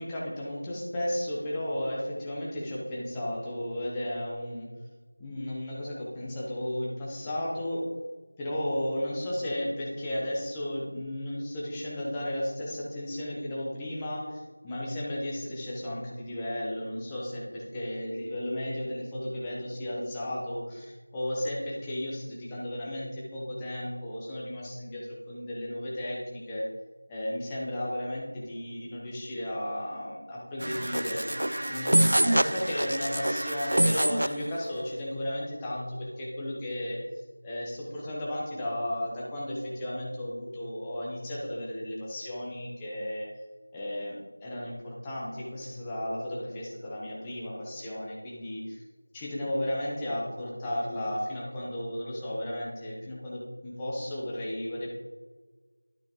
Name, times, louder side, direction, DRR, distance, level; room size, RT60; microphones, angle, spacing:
voice 1, 0.0-4.7 5.2-7.9 8.4-26.7 27.1-31.3 31.7-37.0 37.4-43.3 43.7-48.8 49.1-54.9, left 1 dB, 5° left, -6 dB, 0.8 m, -34 dB
sound 1, 30.6-34.4, right 1 dB, 60° right, 0.4 m, -26 dB
11.5 x 5.6 x 3.0 m, 1.4 s
figure-of-eight pair, 175°, 0 cm